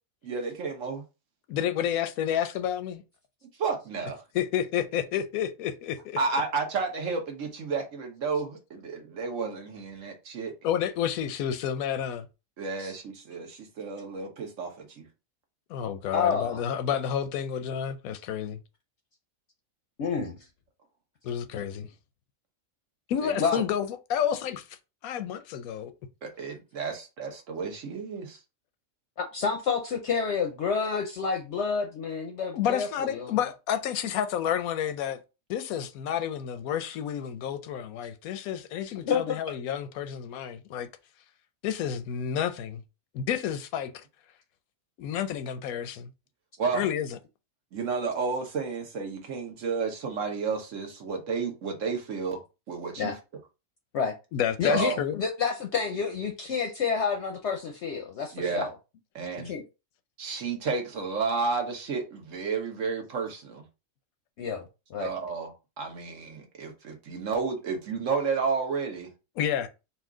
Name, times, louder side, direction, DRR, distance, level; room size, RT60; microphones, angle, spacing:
voice 1, 0.2-1.0 3.6-4.2 6.2-10.5 12.6-15.0 23.2-23.4 26.2-28.4 46.6-46.8 47.7-53.1 54.7-55.0 58.3-58.7 59.1-59.5 60.2-63.6 65.0-69.1, right 5 dB, 65° right, 1.3 m, -31 dB
voice 2, 1.5-3.0 4.3-6.2 10.6-12.3 15.7-18.6 21.2-21.9 23.1-24.6 25.0-25.9 32.5-35.2 35.5-40.9 41.6-42.8 43.1-44.0 45.0-46.1 46.7-47.2 54.3-55.2 69.4-69.7, left 9 dB, 85° left, 1.0 m, -30 dB
voice 3, 16.1-16.6 20.0-20.4 23.4-23.6 29.3-33.4 39.0-39.3 53.0-53.2 53.9-54.2 54.6-58.7 59.4-59.6 64.4-65.1, left 6 dB, 60° left, 0.8 m, -29 dB
4.2 x 2.4 x 3.6 m
omnidirectional pair, 1.5 m